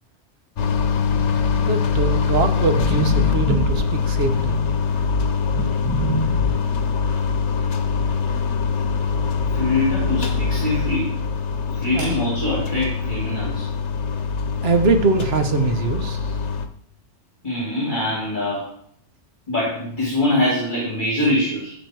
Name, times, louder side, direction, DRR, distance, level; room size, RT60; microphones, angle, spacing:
sound 1, 0.6-16.7, left 5 dB, 85° left, 1.2 m, -23 dB
voice 1, 1.6-4.6 11.9-12.2 14.6-16.4, right 4 dB, 65° right, 7 dB, 1.3 m, -22 dB
sound 2, 2.1-5.1 5.6-6.5, left 2 dB, 15° left, 1.8 m, -26 dB
voice 2, 9.5-11.1 11.7-13.7 17.4-18.7 19.5-21.7, left 1 dB, 45° left, -7 dB, 3.5 m, -23 dB
15.0 x 5.0 x 4.7 m, 0.64 s
omnidirectional pair, 1.2 m